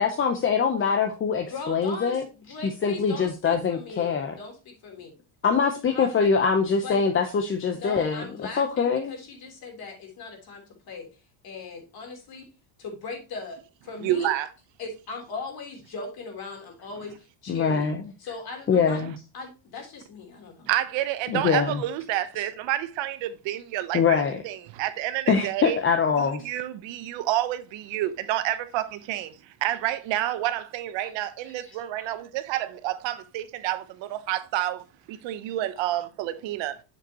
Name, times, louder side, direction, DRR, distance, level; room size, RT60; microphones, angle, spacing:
voice 1, 0.0-2.3 2.6-4.3 5.4-8.3 8.6-9.1 17.5-18.0 18.7-19.1 21.3-21.8 23.9-24.4 25.3-26.5 31.0-31.1 31.7-32.1, left 6 dB, 25° left, 0.8 m, -24 dB
voice 2, 1.5-5.2 5.9-6.3 6.8-7.0 7.7-11.2 11.4-12.5 12.8-14.3 14.8-17.9 18.2-19.1 19.3-20.7, left 4 dB, 50° left, 3.4 m, -39 dB
voice 3, 14.0-14.5 20.7-25.8 26.2-29.3 29.6-34.8 35.1-36.7, right 13 dB, 65° right, 1.0 m, -29 dB
7.5 x 6.5 x 3.0 m
cardioid pair, 135°, 48 cm